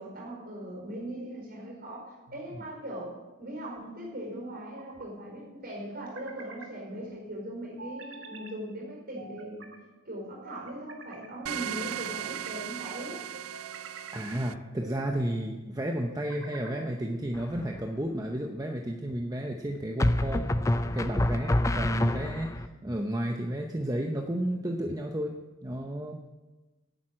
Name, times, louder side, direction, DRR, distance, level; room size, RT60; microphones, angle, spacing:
voice 1, 0.0-9.7 10.0-13.2, right 1 dB, 45° right, -2 dB, 4.8 m, -40 dB
sound 1, 2.3-2.9 4.3-5.1 5.9-6.7 7.8-8.5 9.2-9.8 10.4-11.3 11.9-12.6 13.3-14.2 14.8-15.3 16.1-16.9, right 3 dB, 65° right, 1.7 m, -47 dB
sound 2, 11.5-14.5, right 10 dB, 85° right, 0.4 m, -37 dB
voice 2, 14.1-20.4 20.9-25.3 25.6-26.3, right 1 dB, 15° right, 2 dB, 0.7 m, -32 dB
sound 3, 17.3-17.9 20.0-22.7, left 1 dB, 15° left, 0.4 m, -27 dB
10.5 x 9.0 x 8.8 m, 1.2 s
head